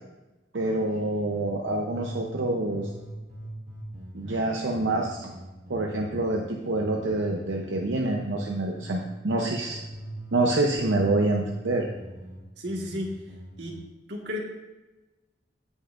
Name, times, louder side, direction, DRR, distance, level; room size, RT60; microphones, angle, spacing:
voice 1, 0.5-2.9 4.1-5.3 5.7-9.8 10.3-11.9, right 2 dB, 90° right, 0 dB, 0.8 m, -26 dB
sound 1, 1.3-2.4 2.7-8.4 8.7-10.4 10.7-13.8, right 1 dB, 45° right, 2.2 m, -42 dB
voice 2, 12.6-13.2 13.6-13.8 14.1-14.4, left 1 dB, 70° right, -1 dB, 1.7 m, -32 dB
15.5 x 5.5 x 2.5 m, 1.1 s
head